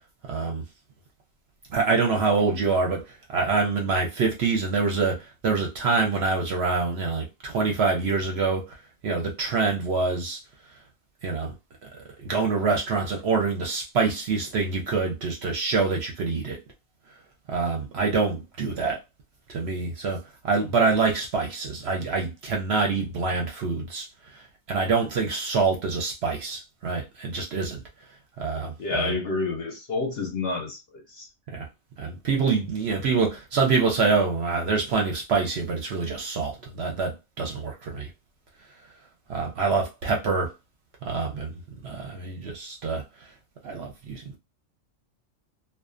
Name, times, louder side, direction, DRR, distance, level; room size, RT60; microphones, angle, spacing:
voice 1, 0.3-0.6 1.7-8.8 9.0-10.4 11.2-11.5 11.8-11.9 12.2-16.6 17.5-19.0 19.5-24.1 24.3-27.8 28.4-29.1 31.5-31.7 32.0-38.1 39.3-40.5 41.0-41.5 41.8-43.0 43.6-44.4, right 4 dB, 60° right, 0.7 m, -26 dB
voice 2, 28.8-31.3, left 3 dB, 60° left, 0.7 m, -29 dB
2.5 x 2.1 x 2.4 m
omnidirectional pair, 1.4 m